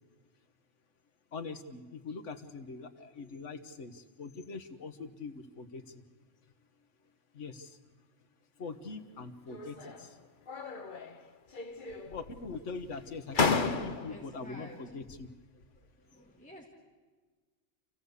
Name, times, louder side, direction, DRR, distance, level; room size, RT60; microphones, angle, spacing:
voice 1, 1.3-6.0 7.3-7.8 8.6-10.3 12.0-15.3, left 4 dB, 80° left, 8 dB, 1.6 m, -43 dB
sound 1, 9.5-10.1 10.5-11.2 11.5-12.3 12.9-13.0 13.3-14.3, left 4 dB, 45° left, 1.2 m, -32 dB
voice 2, 13.3-15.1 15.8-16.7, equal, 5° left, -2 dB, 2.0 m, -52 dB
27.0 x 15.5 x 8.2 m, 1.4 s
omnidirectional pair, 1.3 m